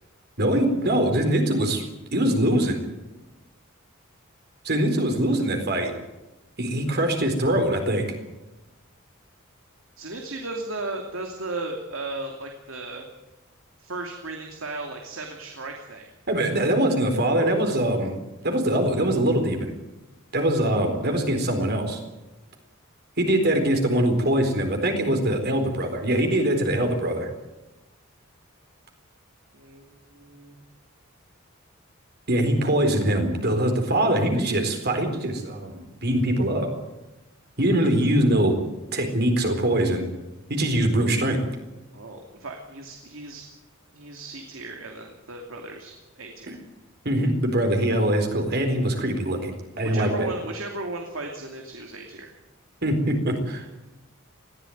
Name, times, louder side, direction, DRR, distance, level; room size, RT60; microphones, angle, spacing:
voice 1, 0.4-1.8 2.1-2.8 4.6-5.9 6.6-8.1 16.3-18.2 18.4-19.7 20.3-22.0 23.2-27.3 32.3-36.7 37.6-38.6 38.9-40.1 40.5-41.4 47.0-50.3 52.8-53.7, right 1 dB, 50° right, 4 dB, 4.1 m, -23 dB
voice 2, 10.0-13.1 13.8-16.1 29.5-30.6 39.9-40.0 41.9-43.4 43.9-46.6 49.9-52.3, right 2 dB, 70° right, 2 dB, 2.7 m, -36 dB
20.5 x 15.5 x 9.3 m, 1.0 s
head